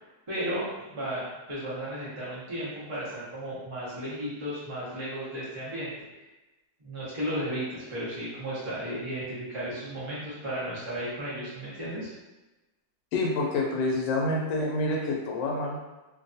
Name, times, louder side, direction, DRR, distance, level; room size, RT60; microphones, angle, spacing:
voice 1, 0.3-5.9 6.8-12.1, equal, 40° right, -10 dB, 0.4 m, -34 dB
voice 2, 13.1-15.8, left 2 dB, 80° left, -1 dB, 1.3 m, -27 dB
3.1 x 2.3 x 2.6 m, 1.1 s
omnidirectional pair, 2.0 m